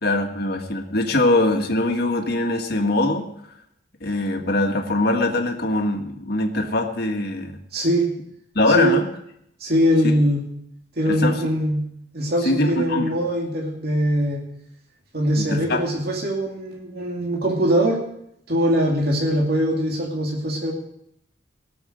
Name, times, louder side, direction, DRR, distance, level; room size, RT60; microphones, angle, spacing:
voice 1, 0.0-3.3 4.0-7.6 8.6-9.1 10.0-10.2 11.1-11.5 12.4-13.1 15.4-15.8, left 2 dB, 55° left, 3 dB, 1.8 m, -22 dB
voice 2, 7.7-8.1 8.7-9.0 9.6-10.4 11.0-11.8 12.1-14.4 15.1-18.0 18.5-20.7, equal, 55° right, -1 dB, 2.6 m, -22 dB
18.0 x 7.1 x 6.4 m, 0.74 s
head